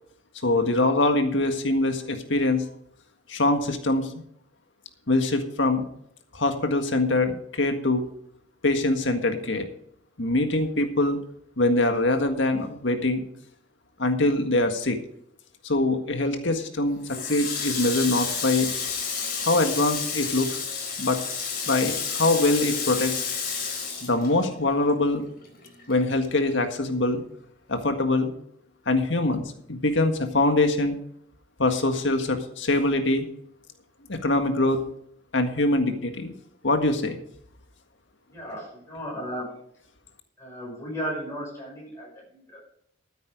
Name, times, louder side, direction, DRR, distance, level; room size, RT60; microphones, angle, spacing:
voice 1, 0.4-2.7 3.3-4.1 5.1-5.9 6.3-8.0 8.6-9.7 10.2-11.2 11.6-13.2 14.0-15.0 15.6-18.7 19.5-20.6 21.0-21.2 21.7-23.2 24.0-25.2 25.9-27.2 27.7-28.3 28.9-31.0 31.6-33.3 34.1-34.8 35.3-36.3 36.6-37.2, left 2 dB, 75° left, 6 dB, 1.7 m, -23 dB
Water tap faucet, 17.0-24.9 25.2-26.5, left 6 dB, 50° left, 4.2 m, -31 dB
voice 2, 38.3-39.5 40.4-42.7, equal, 15° left, -4 dB, 5.9 m, -35 dB
13.5 x 9.5 x 5.1 m, 0.69 s
head